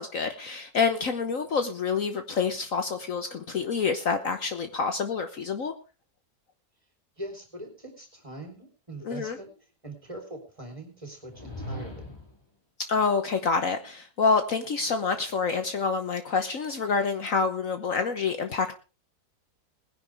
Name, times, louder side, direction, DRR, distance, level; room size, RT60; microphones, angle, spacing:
voice 1, 0.0-5.7 9.0-9.4 12.9-18.7, left 5 dB, 55° left, 1.4 m, -27 dB
voice 2, 7.2-9.5 9.8-12.1, right 1 dB, 20° right, 4.2 m, -42 dB
sound 1, 11.2-12.4, equal, 15° left, 2.8 m, -39 dB
20.5 x 10.5 x 3.5 m
omnidirectional pair, 1.7 m